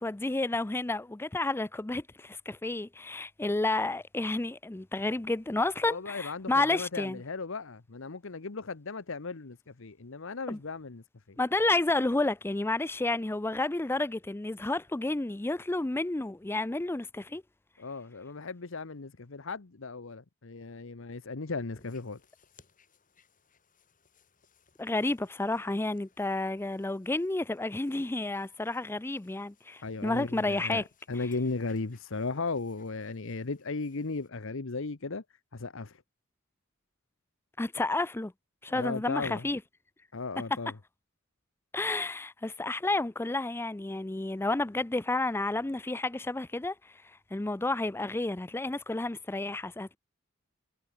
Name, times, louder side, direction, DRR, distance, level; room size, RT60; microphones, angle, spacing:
voice 1, 0.0-7.2 10.5-10.6 11.4-17.4 24.8-30.8 37.6-38.3 38.6-39.6 41.7-46.8 47.3-50.0, left 2 dB, 10° left, 0.4 m, -31 dB
voice 2, 5.8-11.4 17.8-22.2 29.8-35.2 35.5-36.0 38.7-39.5 40.1-40.8, left 3 dB, 65° left, 1.0 m, -36 dB
sound 1, 21.7-34.3, left 5 dB, 40° left, 7.3 m, -66 dB
head